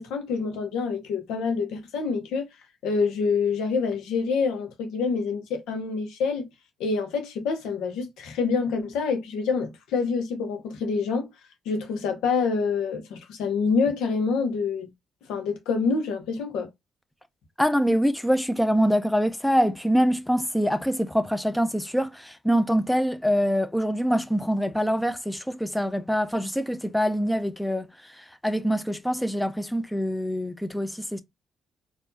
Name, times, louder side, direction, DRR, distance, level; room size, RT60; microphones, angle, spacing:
voice 1, 0.0-2.5 2.8-6.5 6.8-11.3 11.6-14.9 15.3-16.7, left 5 dB, 90° left, 1.1 m, -26 dB
voice 2, 17.6-27.9 28.4-31.2, equal, 5° left, 0.7 m, -24 dB
4.5 x 2.7 x 2.7 m
supercardioid pair, 65°, 0 cm